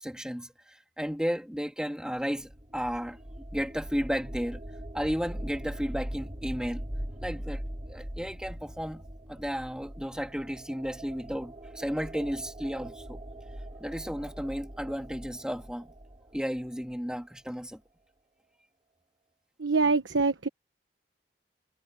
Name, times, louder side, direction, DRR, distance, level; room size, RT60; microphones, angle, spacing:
voice 1, 0.0-3.2 3.5-4.6 4.9-6.8 7.2-13.2 13.8-15.9 16.3-17.8, equal, 5° right, 2.3 m, -33 dB
sound 1, 2.4-17.0, right 1 dB, 30° right, 2.1 m, -41 dB
voice 2, 19.6-20.5, right 4 dB, 90° right, 1.2 m, -25 dB
head